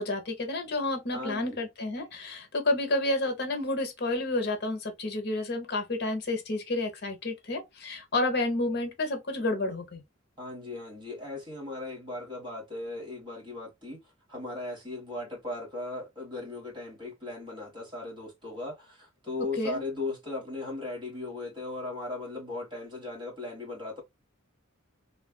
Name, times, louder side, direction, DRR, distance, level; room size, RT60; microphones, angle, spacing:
voice 1, 0.0-10.0 19.6-19.8, left 2 dB, 55° left, 0.8 m, -30 dB
voice 2, 1.1-1.6 10.4-14.0 14.3-24.0, left 2 dB, 25° right, 1.5 m, -37 dB
3.2 x 2.4 x 2.2 m
head